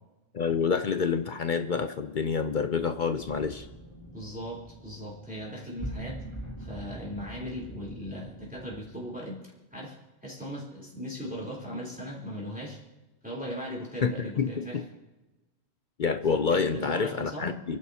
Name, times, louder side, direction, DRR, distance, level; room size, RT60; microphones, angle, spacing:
voice 1, 0.3-3.7 14.0-14.8 16.0-17.8, left 5 dB, 55° left, 9 dB, 0.6 m, -28 dB
sound 1, 3.2-9.0, right 1 dB, 20° left, 2.1 m, -43 dB
voice 2, 4.1-6.2 6.6-9.4 9.7-10.0 10.2-12.8 13.2-14.8 16.3-17.6, equal, 5° right, -5 dB, 3.5 m, -38 dB
29.0 x 11.0 x 2.8 m, 1.1 s
omnidirectional pair, 1.4 m